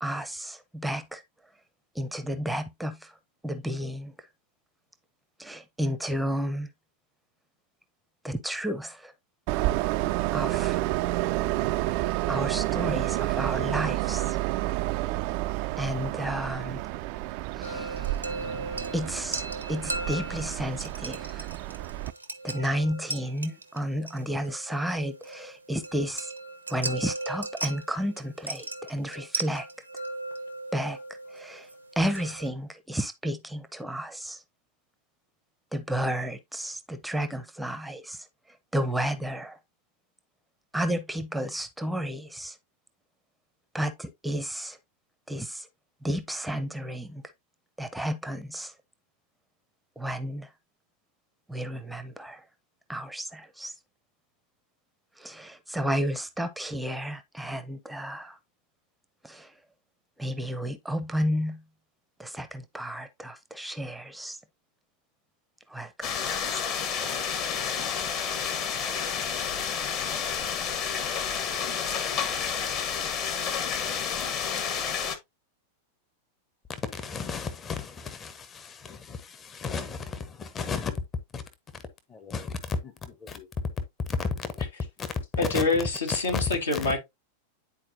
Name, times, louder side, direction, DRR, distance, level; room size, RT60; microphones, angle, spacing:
voice 1, 0.0-1.2 1.9-3.2 3.4-4.1 5.4-6.7 8.2-9.1 10.3-10.9 12.3-14.4 15.8-16.8 17.5-18.3 18.9-21.5 22.4-26.3 26.7-29.7 30.7-31.0 31.3-31.7 32.0-34.4 35.7-38.3 38.7-39.6 40.7-42.6 43.7-44.8 45.3-45.7 46.0-47.2 47.8-48.7 50.0-50.5 51.5-52.4 52.9-53.7 55.2-58.4 59.2-59.5 60.2-61.6 62.2-64.4 65.7-67.2, equal, 5° right, 0.7 m, -32 dB
Train, 9.5-22.1, right 17 dB, 45° right, 0.3 m, -29 dB
sound 1, 17.6-32.5, right 2 dB, 80° right, 0.7 m, -38 dB
sound 2, 66.0-75.2, left 7 dB, 40° left, 1.4 m, -30 dB
voice 2, 76.7-80.9 81.3-81.4 81.7-81.8 82.1-83.5 84.1-84.6 85.0-85.2 85.5-85.6 86.1-86.4 86.7-86.9, left 5 dB, 25° left, 0.9 m, -34 dB
voice 3, 85.4-87.0, left 3 dB, 70° left, 1.8 m, -26 dB
10.0 x 4.2 x 2.7 m
figure-of-eight pair, 90°, 0 cm